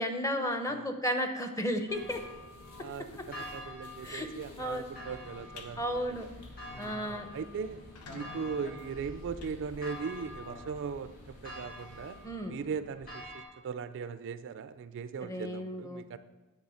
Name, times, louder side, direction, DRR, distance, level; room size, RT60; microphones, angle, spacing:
voice 1, 0.0-2.2 4.0-4.3 4.6-4.9 5.8-6.3 6.8-7.3 12.2-12.5 15.2-16.0, equal, 15° left, 6 dB, 0.7 m, -33 dB
sound 1, 1.9-12.3, equal, 70° left, 1.7 m, -52 dB
sound 2, 1.9-13.4, left 1 dB, 40° left, 1.8 m, -47 dB
voice 2, 2.8-6.2 7.1-7.8 8.1-12.2 12.5-16.2, right 6 dB, 55° right, 12 dB, 0.3 m, -39 dB
sound 3, 5.6-5.7 6.2-6.4 6.8-6.9 7.1-7.2 7.7-10.3, left 4 dB, 90° left, 0.8 m, -52 dB
9.6 x 3.7 x 6.3 m, 1.1 s
head